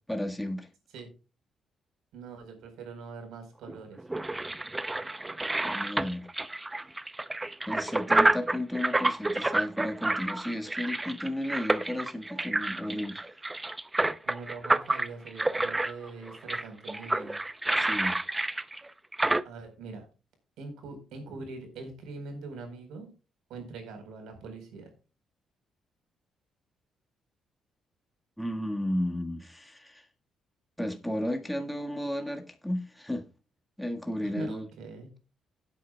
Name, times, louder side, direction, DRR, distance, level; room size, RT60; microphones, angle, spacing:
voice 1, 0.1-0.7 5.6-6.3 7.7-13.2 17.7-18.2 28.4-30.0 30.8-33.3 33.8-34.7, left 1 dB, 5° left, 1.7 m, -33 dB
voice 2, 2.1-4.0 14.2-17.4 19.4-20.1 20.6-23.1 23.5-24.9 34.2-35.1, right 4 dB, 85° right, 4.3 m, -43 dB
sound 1, 3.6-19.4, right 2 dB, 15° right, 0.6 m, -29 dB
17.0 x 8.4 x 2.3 m
cardioid pair, 90°, 0 cm